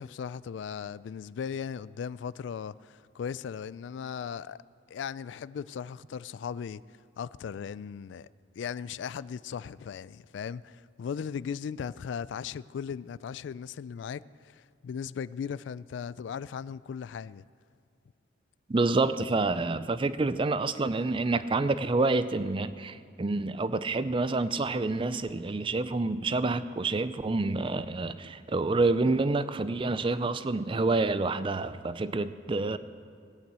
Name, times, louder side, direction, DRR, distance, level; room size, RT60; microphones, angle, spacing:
voice 1, 0.0-4.6 4.9-6.8 7.2-8.3 8.6-17.4, left 7 dB, 70° left, 0.3 m, -37 dB
voice 2, 18.7-32.8, right 3 dB, 25° right, 0.4 m, -28 dB
17.5 x 9.0 x 8.1 m
head